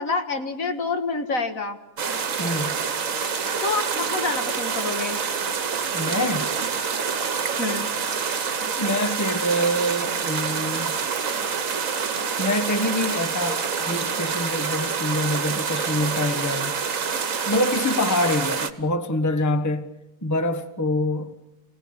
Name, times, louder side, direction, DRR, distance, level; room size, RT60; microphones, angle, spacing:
voice 1, 0.0-1.8 3.6-5.2 7.6-7.9, left 4 dB, 65° left, 2.2 m, -27 dB
sound 1, 2.0-18.7, right 6 dB, 60° right, 1.6 m, -27 dB
voice 2, 2.4-2.8 5.9-6.5 8.8-11.0 12.4-16.8 17.5-19.9 20.2-21.3, left 1 dB, 15° left, 1.1 m, -25 dB
28.0 x 18.5 x 8.7 m
omnidirectional pair, 1.6 m